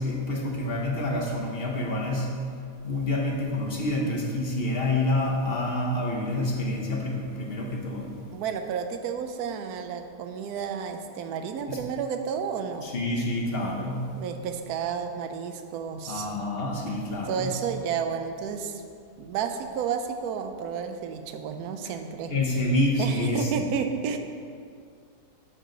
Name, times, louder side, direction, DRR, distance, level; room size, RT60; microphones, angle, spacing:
voice 1, 0.0-2.4 2.8-8.1 11.7-11.8 12.8-14.1 16.1-17.5 22.3-23.5, left 1 dB, 40° left, -1 dB, 1.0 m, -27 dB
voice 2, 8.3-12.9 14.2-16.3 17.3-18.8 19.2-22.3 23.0-24.2, right 7 dB, 70° right, 6 dB, 1.0 m, -31 dB
12.5 x 4.7 x 3.9 m, 2.3 s
omnidirectional pair, 2.0 m